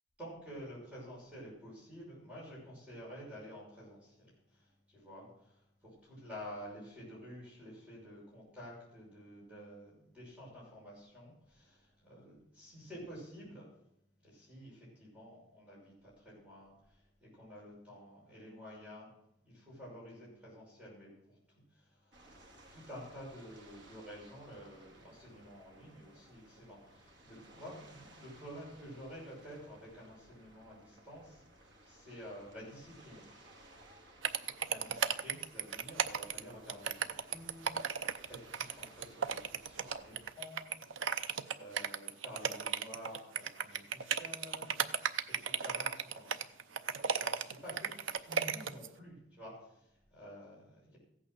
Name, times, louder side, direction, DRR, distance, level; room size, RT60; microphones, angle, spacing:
voice 1, 0.2-13.7 14.2-19.1 19.4-33.2 34.7-37.8 38.3-45.0 45.4-47.9 48.2-51.0, equal, 5° right, -6 dB, 6.2 m, -51 dB
sound 1, 22.1-40.3, right 1 dB, 65° right, 2.1 m, -59 dB
sound 2, 34.2-48.9, right 7 dB, 80° right, 0.6 m, -35 dB
15.0 x 8.8 x 6.4 m, 0.76 s
head